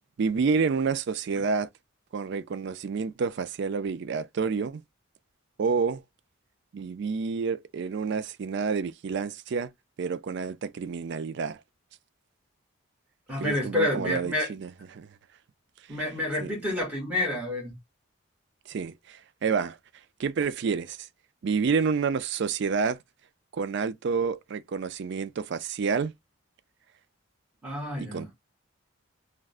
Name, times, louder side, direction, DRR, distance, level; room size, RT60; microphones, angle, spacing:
voice 1, 0.2-1.7 2.1-4.8 5.6-6.0 6.7-9.7 10.0-11.6 13.4-15.1 16.4-16.5 18.7-19.8 20.2-21.1 21.4-23.0 23.5-26.1 28.1-28.3, right 5 dB, 55° right, 0.3 m, -29 dB
voice 2, 13.3-14.6 15.9-17.7 27.6-28.2, left 1 dB, 5° right, 1.4 m, -29 dB
3.5 x 2.2 x 2.4 m
head